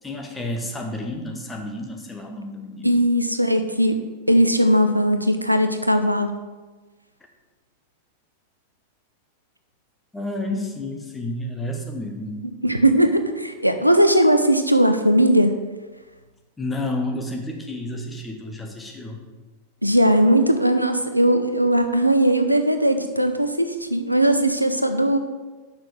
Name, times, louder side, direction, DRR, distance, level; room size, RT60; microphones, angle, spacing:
voice 1, 0.0-3.0 10.1-12.4 16.6-19.2, left 1 dB, 10° left, 2 dB, 1.4 m, -30 dB
voice 2, 2.8-4.0 4.3-6.3 12.6-15.6 19.8-25.2, right 1 dB, 90° right, 8 dB, 0.6 m, -19 dB
6.1 x 5.6 x 6.6 m, 1.3 s
figure-of-eight pair, 90°, 0 cm